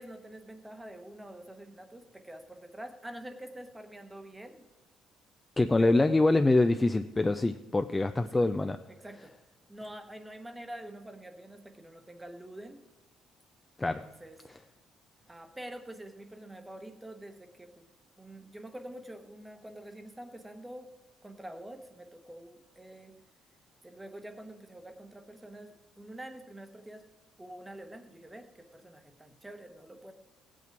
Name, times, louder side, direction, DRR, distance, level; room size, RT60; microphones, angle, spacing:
voice 1, 0.0-4.6 5.8-6.1 8.2-8.4 8.9-9.3 9.7-12.8 14.0-14.4 15.3-17.9 18.2-20.9 21.2-23.2 23.8-27.0 27.4-30.1, right 1 dB, 10° right, 7 dB, 1.0 m, -46 dB
voice 2, 5.6-8.8 13.8-14.1, left 2 dB, 10° left, 8 dB, 0.4 m, -25 dB
17.0 x 8.4 x 4.6 m, 1.2 s
cardioid pair, 155°, 0 cm